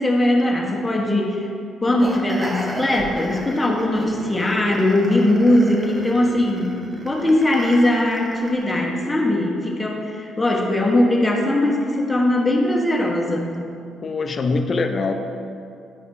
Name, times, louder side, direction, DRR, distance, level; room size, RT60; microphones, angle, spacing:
voice 1, 0.0-1.5 1.8-6.8 7.0-13.7, left 1 dB, 15° left, -2 dB, 1.2 m, -20 dB
sound 1, 2.0-8.8, right 1 dB, 15° right, 0.9 m, -35 dB
voice 2, 14.0-15.1, left 3 dB, 40° left, 5 dB, 0.6 m, -23 dB
10.5 x 4.8 x 2.7 m, 2.4 s
cardioid pair, 85°, 0 cm